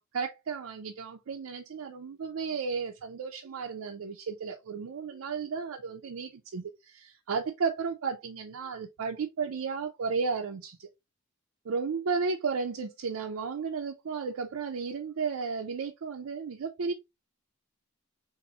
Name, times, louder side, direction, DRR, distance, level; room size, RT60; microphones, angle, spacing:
voice 1, 0.0-10.9 11.6-16.9, right 5 dB, 80° right, 0.5 m, -33 dB
4.1 x 2.6 x 2.7 m
head